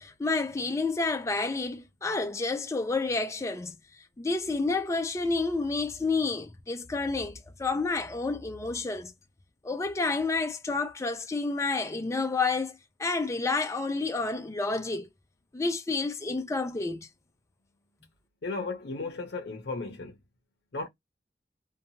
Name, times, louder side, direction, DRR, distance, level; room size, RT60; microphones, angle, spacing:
voice 1, 0.0-3.8 4.2-9.1 9.6-15.1 15.5-17.1, left 3 dB, 15° left, 0.4 m, -29 dB
voice 2, 18.4-20.2 20.7-20.9, left 3 dB, 65° left, 0.7 m, -35 dB
2.8 x 2.2 x 2.7 m
head